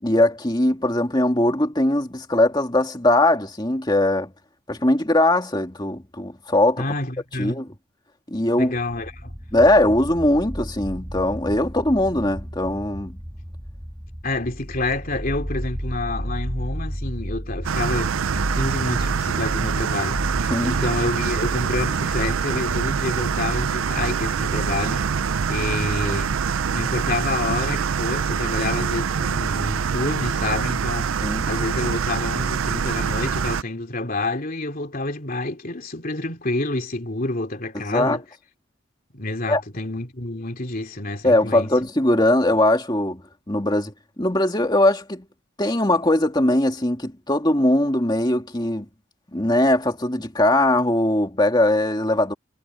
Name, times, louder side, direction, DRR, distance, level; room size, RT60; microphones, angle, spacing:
voice 1, 0.0-4.3 4.7-6.8 7.4-7.7 8.3-8.7 9.5-13.2 20.5-20.8 31.2-31.5 37.9-38.2 39.5-39.6 41.2-43.2 43.5-43.9 44.2-45.2 45.6-48.8 49.3-52.3, left 1 dB, 20° left, 2.4 m, -20 dB
voice 2, 6.8-7.6 8.6-9.3 14.2-18.1 18.5-25.1 25.5-26.4 26.7-31.1 31.4-38.2 39.1-41.7, left 2 dB, 45° left, 3.0 m, -28 dB
sound 1, 8.9-26.0, equal, 10° right, 3.1 m, -33 dB
sound 2, 17.6-33.6, right 6 dB, 75° right, 0.5 m, -25 dB
head